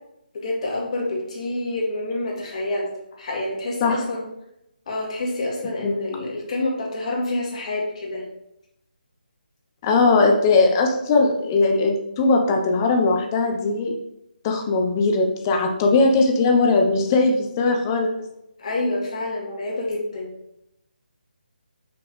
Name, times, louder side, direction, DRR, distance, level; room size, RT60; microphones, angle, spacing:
voice 1, 0.3-2.9 3.2-4.2 4.9-8.3 18.6-20.3, left 2 dB, 40° left, -2 dB, 2.1 m, -27 dB
voice 2, 9.8-13.9 14.4-18.3, left 3 dB, 20° left, 3 dB, 0.8 m, -19 dB
6.0 x 5.9 x 3.2 m, 0.83 s
figure-of-eight pair, 160°, 5 cm